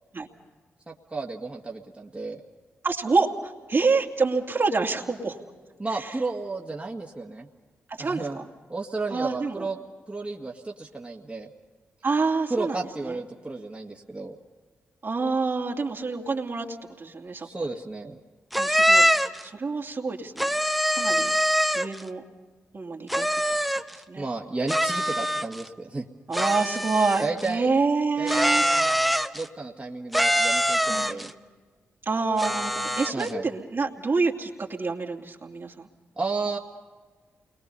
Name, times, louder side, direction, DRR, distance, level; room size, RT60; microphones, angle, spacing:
voice 1, 0.9-2.4 5.8-7.5 8.0-8.4 8.7-9.8 10.1-11.5 12.5-14.3 17.4-18.2 24.2-26.1 27.2-27.7 28.2-28.9 29.3-31.3 33.1-33.5 36.2-36.6, right 3 dB, 25° right, -1 dB, 2.1 m, -32 dB
voice 2, 2.8-5.4 5.9-6.2 8.0-8.5 9.1-9.7 12.0-13.2 15.0-17.5 18.6-19.1 19.4-20.6 20.9-21.3 21.7-22.2 22.7-23.3 23.9-24.3 26.3-28.6 30.9-31.4 32.0-35.9, right 4 dB, 50° right, 1 dB, 2.7 m, -27 dB
sound 1, 18.5-19.4 20.4-22.0 23.1-23.9 24.7-25.7 26.3-27.5 28.3-29.5 30.1-31.3 32.4-33.3, equal, ahead, 1.2 m, -23 dB
29.0 x 22.0 x 5.6 m, 1.4 s
supercardioid pair, 50°, 5 cm